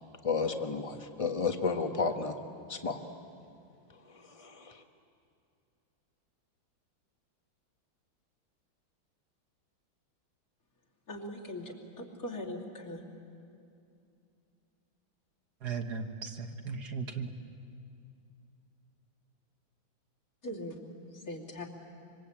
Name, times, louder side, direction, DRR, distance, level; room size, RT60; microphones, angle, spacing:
voice 1, 0.2-2.4 2.7-3.0 3.9-4.8, left 4 dB, 20° left, 5 dB, 1.2 m, -32 dB
voice 2, 11.1-13.0 20.4-21.7, left 1 dB, 45° left, -3 dB, 3.4 m, -41 dB
voice 3, 11.7-12.1 15.6-17.3, right 5 dB, 55° right, 6 dB, 1.8 m, -38 dB
26.5 x 25.0 x 8.8 m, 2.5 s
omnidirectional pair, 2.2 m